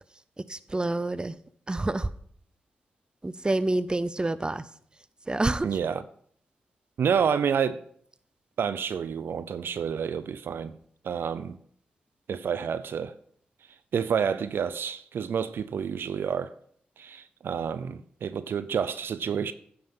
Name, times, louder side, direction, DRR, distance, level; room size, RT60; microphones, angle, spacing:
voice 1, 0.5-1.3 1.7-2.1 3.2-4.6 5.3-5.7, right 2 dB, 25° right, 0.6 m, -27 dB
voice 2, 5.6-6.0 7.0-7.8 8.6-10.8 11.0-11.6 12.3-13.1 13.9-16.5 17.0-19.5, right 7 dB, 70° right, 0.5 m, -29 dB
9.6 x 5.6 x 5.3 m
supercardioid pair, 45°, 4 cm